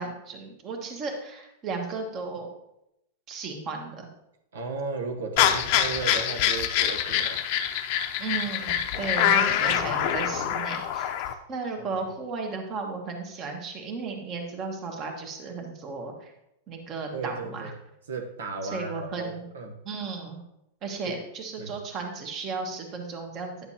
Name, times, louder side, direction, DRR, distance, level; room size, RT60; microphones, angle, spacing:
voice 1, 0.0-2.5 3.3-4.1 8.2-16.3 16.7-17.7 18.6-19.4 19.8-20.4 20.8-23.5, right 4 dB, 35° right, 3 dB, 1.4 m, -35 dB
voice 2, 4.5-7.4 9.2-10.0 11.9-12.0 17.1-17.7 18.1-19.8 21.1-21.2 21.6-21.8, right 4 dB, 90° right, 4 dB, 0.9 m, -35 dB
sound 1, 5.4-11.3, left 10 dB, 50° left, 0.6 m, -25 dB
9.9 x 6.7 x 2.8 m, 0.84 s
supercardioid pair, 140°, 0 cm